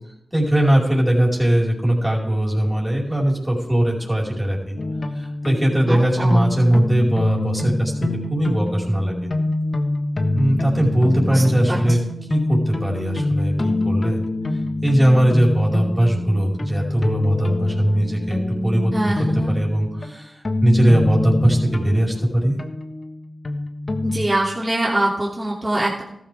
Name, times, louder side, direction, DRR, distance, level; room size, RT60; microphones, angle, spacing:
voice 1, 0.3-4.7 5.1-9.3 10.3-12.0 12.3-14.2 14.8-18.4 18.6-19.1 19.5-22.6, right 1 dB, 10° right, -4 dB, 4.8 m, -20 dB
sound 1, 4.8-24.3, left 2 dB, 50° left, 1.4 m, -25 dB
voice 2, 5.9-6.5 11.3-11.4 11.7-11.8 18.9-19.5 24.0-26.0, right 1 dB, 25° right, -4 dB, 2.8 m, -23 dB
14.0 x 13.0 x 3.6 m, 0.81 s
cardioid pair, 45°, 0 cm